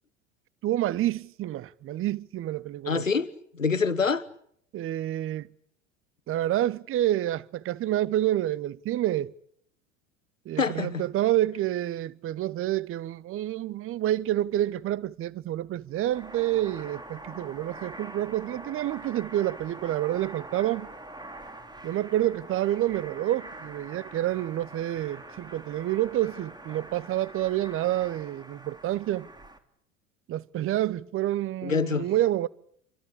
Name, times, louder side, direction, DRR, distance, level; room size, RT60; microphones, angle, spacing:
voice 1, 0.6-3.0 4.7-5.5 6.3-9.3 10.5-20.9 21.8-29.3 30.3-32.5, right 13 dB, 35° right, 1.0 m, -28 dB
voice 2, 2.9-4.2 10.6-11.0 31.6-32.1, left 5 dB, 90° left, 1.3 m, -26 dB
sound 1, 15.9-29.6, right 2 dB, 10° right, 3.3 m, -44 dB
29.0 x 25.0 x 6.8 m
figure-of-eight pair, 75°, 38 cm